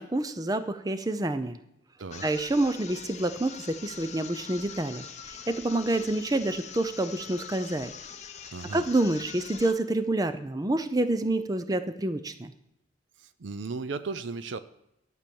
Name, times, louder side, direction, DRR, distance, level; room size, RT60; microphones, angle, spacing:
voice 1, 0.0-1.6 2.2-7.9 8.7-12.5, right 2 dB, 20° right, 11 dB, 0.5 m, -28 dB
sound 1, 2.1-9.9, left 7 dB, 35° left, 0.8 m, -44 dB
voice 2, 8.5-8.8 13.2-14.6, right 4 dB, 75° right, 13 dB, 0.5 m, -35 dB
12.0 x 6.0 x 7.0 m, 0.85 s
head